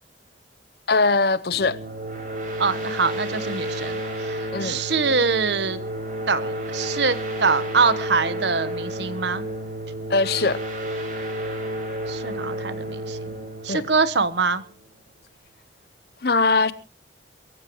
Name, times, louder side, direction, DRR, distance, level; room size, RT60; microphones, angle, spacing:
voice 1, 0.9-1.8 4.5-4.8 10.1-10.6 13.7-13.8 16.2-16.7, left 3 dB, 55° left, 0.8 m, -21 dB
sound 1, 1.5-14.9, right 1 dB, 45° right, 6.3 m, -31 dB
voice 2, 2.6-5.8 6.3-9.4 12.1-13.3 13.6-14.6, right 4 dB, 70° right, 1.1 m, -24 dB
24.0 x 15.0 x 3.1 m
head